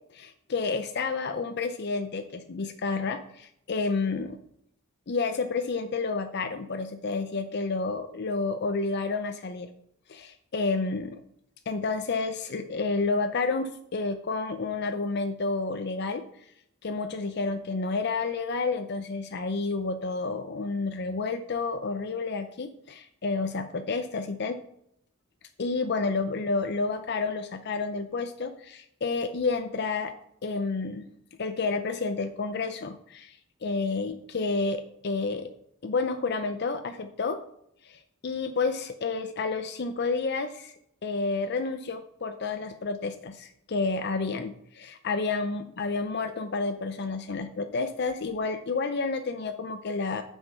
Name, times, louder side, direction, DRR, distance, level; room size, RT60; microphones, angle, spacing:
voice 1, 0.1-4.4 5.1-9.7 10.1-11.2 11.7-16.2 16.8-24.6 25.6-30.1 30.4-31.1 31.4-35.5 35.8-37.4 37.8-40.7 41.0-50.2, left 4 dB, 55° left, 8 dB, 0.6 m, -30 dB
7.8 x 6.3 x 5.5 m, 0.73 s
head